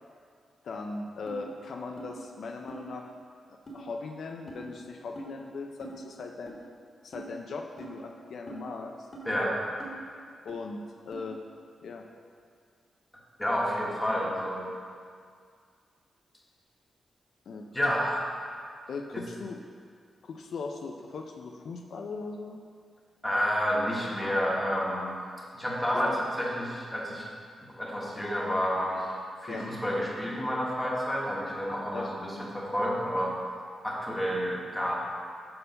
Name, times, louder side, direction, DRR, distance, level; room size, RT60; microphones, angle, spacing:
voice 1, 0.6-3.1 3.5-6.6 7.0-9.1 10.4-10.8 11.1-11.4 11.8-12.1 17.5-17.7 18.9-19.6 20.2-22.6 25.9-26.2 29.5-29.7 31.9-32.1, left 4 dB, 70° left, 2 dB, 0.4 m, -39 dB
sound 1, 1.3-1.4 2.0-2.1 2.7-2.8 3.7-3.8 4.5-4.6 5.2-5.3 5.8-6.0 6.5-6.6 7.1-7.3 7.8-7.9 8.5-8.6 9.1-9.3 9.8-10.0 10.5-10.6 11.1-11.2, right 3 dB, 35° left, 1.2 m, -43 dB
voice 2, 13.4-14.7 17.7-18.2 19.1-19.2 23.2-25.2 25.5-27.3 27.8-29.1 29.4-33.3 33.8-35.0, equal, 10° left, -4 dB, 1.3 m, -29 dB
6.5 x 4.5 x 5.4 m, 2.2 s
wide cardioid pair, 115°, 0 cm